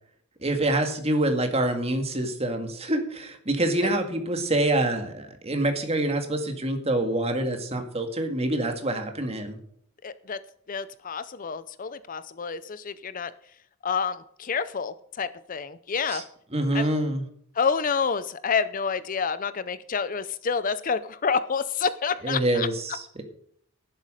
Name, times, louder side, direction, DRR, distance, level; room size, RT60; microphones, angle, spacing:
voice 1, 0.4-9.6 16.1-16.2 16.5-17.2 22.2-23.2, right 1 dB, 30° right, 5 dB, 2.0 m, -26 dB
voice 2, 10.0-10.4 10.7-13.3 13.8-16.2 16.7-16.9 17.6-22.7, left 6 dB, 40° left, 15 dB, 0.5 m, -28 dB
11.5 x 11.5 x 5.0 m, 0.65 s
head